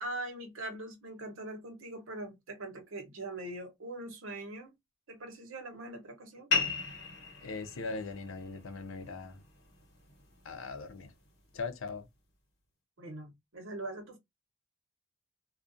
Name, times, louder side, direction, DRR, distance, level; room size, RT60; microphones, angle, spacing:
voice 1, 0.0-4.7 5.1-6.5 13.0-14.2, right 2 dB, 80° right, 0.9 m, -42 dB
sound 1, 6.5-11.5, left 4 dB, 55° left, 1.1 m, -37 dB
voice 2, 7.4-9.4 10.4-11.1 11.5-12.1, left 4 dB, 85° left, 0.5 m, -40 dB
2.3 x 2.2 x 2.5 m
head